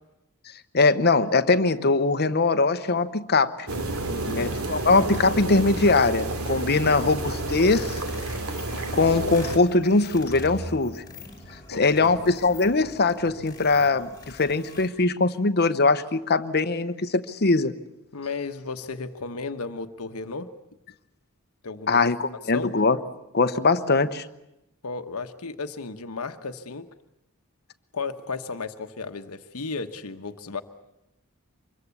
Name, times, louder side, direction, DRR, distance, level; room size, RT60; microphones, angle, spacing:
voice 1, 0.7-3.7 4.4-8.0 8.9-11.0 11.7-17.7 21.9-23.0 23.3-24.3, left 3 dB, 45° left, 11 dB, 1.0 m, -21 dB
sound 1, 3.7-9.6, right 2 dB, 70° right, 2.5 m, -30 dB
voice 2, 4.1-4.5 11.7-12.2 18.1-20.5 21.6-22.0 22.5-22.7 24.8-26.9 27.9-30.6, left 4 dB, 75° left, 8 dB, 1.1 m, -34 dB
sound 2, 7.2-14.9, left 2 dB, 15° left, 4.9 m, -43 dB
25.5 x 22.0 x 8.3 m, 0.89 s
head